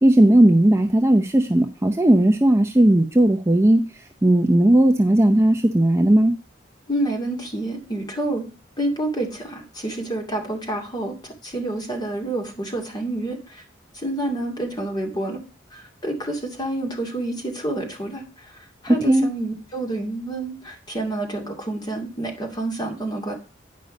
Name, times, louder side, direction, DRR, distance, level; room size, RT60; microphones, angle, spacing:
voice 1, 0.0-3.8 4.2-6.4 18.9-19.3, right 1 dB, 15° right, 4 dB, 0.6 m, -16 dB
voice 2, 6.9-8.5 8.8-13.6 13.9-15.4 15.7-18.5 18.8-23.3, right 2 dB, 25° left, 1 dB, 2.4 m, -28 dB
9.5 x 5.4 x 5.3 m, 0.32 s
head